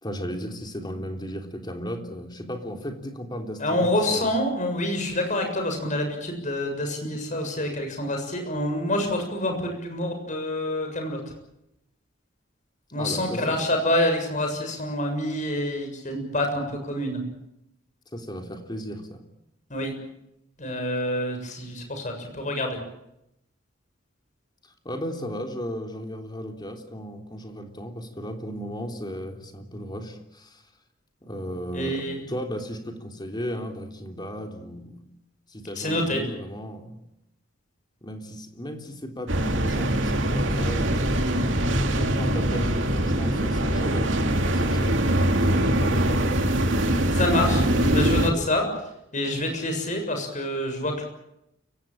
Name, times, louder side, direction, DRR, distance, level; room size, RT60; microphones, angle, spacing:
voice 1, 0.0-4.3 12.9-13.6 18.1-19.2 24.8-30.6 31.2-35.0 35.5-36.9 38.0-41.0 41.8-44.1 44.6-45.0 45.6-46.2, equal, 20° left, 4 dB, 3.4 m, -35 dB
voice 2, 3.6-11.2 12.9-17.2 19.7-19.9 20.6-22.8 31.7-32.2 35.8-36.2 47.1-47.6 47.9-48.7 49.1-51.0, left 1 dB, 40° left, 4 dB, 7.1 m, -27 dB
sound 1, 39.3-48.3, right 1 dB, 70° right, 2.8 m, -23 dB
29.5 x 17.0 x 9.0 m, 0.83 s
head